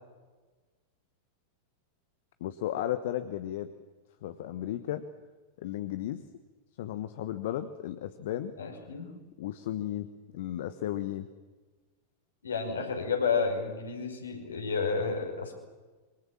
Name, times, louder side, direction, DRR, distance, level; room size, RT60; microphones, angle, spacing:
voice 1, 2.4-3.7 4.2-5.0 5.6-6.2 6.8-8.5 9.4-11.3, left 12 dB, 55° left, 11 dB, 1.2 m, -34 dB
voice 2, 8.6-9.1 12.4-15.6, left 5 dB, 70° left, 3 dB, 5.5 m, -31 dB
27.0 x 24.0 x 7.5 m, 1.3 s
figure-of-eight pair, 90°, 0 cm